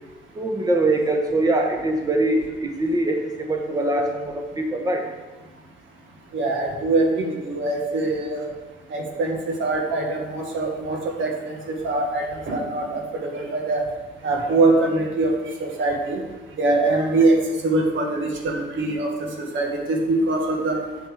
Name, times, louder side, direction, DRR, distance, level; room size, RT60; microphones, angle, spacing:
voice 1, 0.3-5.1, right 2 dB, 20° right, 2 dB, 1.2 m, -23 dB
voice 2, 6.3-8.5 8.9-13.8 14.2-15.3 15.6-16.2 16.6-17.3 17.6-19.1 19.4-20.8, right 2 dB, 75° right, 1 dB, 1.9 m, -23 dB
8.2 x 6.2 x 6.7 m, 1.2 s
cardioid pair, 90°, 20 cm